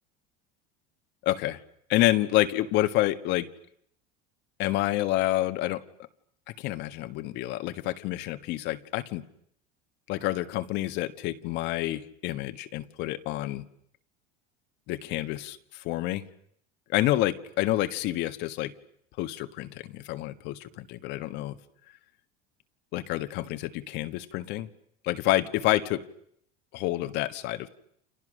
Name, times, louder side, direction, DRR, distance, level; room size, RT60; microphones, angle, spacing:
voice 1, 1.2-1.6 1.9-3.5 4.6-5.8 6.6-9.2 10.1-13.7 14.9-16.3 16.9-18.7 19.2-21.6 22.9-24.7 25.0-26.0 26.7-27.7, left 16 dB, 60° left, 10 dB, 1.5 m, -28 dB
30.0 x 28.0 x 6.5 m, 0.71 s
supercardioid pair, 125°, 20 cm